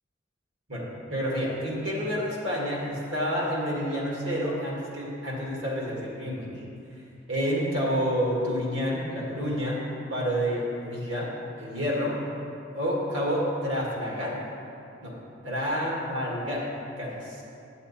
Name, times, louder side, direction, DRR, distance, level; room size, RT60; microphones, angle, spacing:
voice 1, 0.7-6.5 7.3-9.8 10.1-11.3 11.6-12.1 12.7-14.4 15.0-15.1 15.4-16.6 17.0-17.4, equal, 85° right, -4 dB, 2.1 m, -29 dB
9.7 x 7.3 x 4.2 m, 2.6 s
head